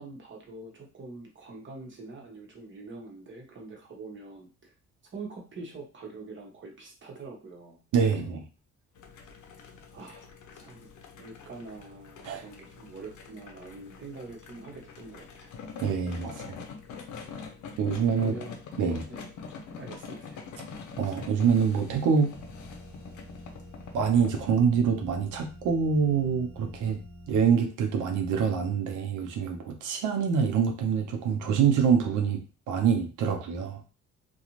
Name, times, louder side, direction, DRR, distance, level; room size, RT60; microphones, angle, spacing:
voice 1, 0.0-4.7 5.1-8.4 9.9-10.9 11.2-15.5 16.4-16.7 18.2-18.6 19.1-19.3 19.8-20.4, right 3 dB, 40° right, 0 dB, 1.0 m, -44 dB
voice 2, 7.9-8.4 12.2-12.4 15.8-16.4 17.8-18.3 18.8-19.1 21.0-22.4 23.9-27.0 27.3-33.8, right 6 dB, 80° right, 3 dB, 0.6 m, -25 dB
sound 1, 9.0-24.5, left 5 dB, 75° left, 0.6 m, -45 dB
sound 2, 22.3-27.6, equal, 10° right, 1.2 m, -47 dB
2.5 x 2.3 x 3.0 m, 0.34 s
cardioid pair, 90°, 30 cm